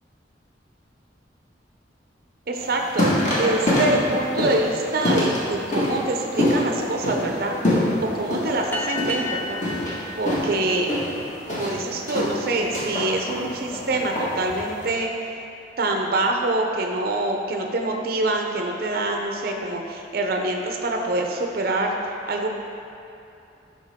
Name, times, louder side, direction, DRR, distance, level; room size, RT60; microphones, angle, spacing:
sound 1, 2.5-14.8, left 1 dB, 40° left, 1.6 m, -25 dB
voice 1, 2.5-7.6 8.1-9.7 10.2-11.0 11.5-15.1 15.8-22.5, right 2 dB, 55° right, 2 dB, 0.6 m, -25 dB
sound 2, 8.7-11.7, left 2 dB, 10° left, 0.6 m, -33 dB
12.0 x 4.3 x 3.6 m, 2.8 s
head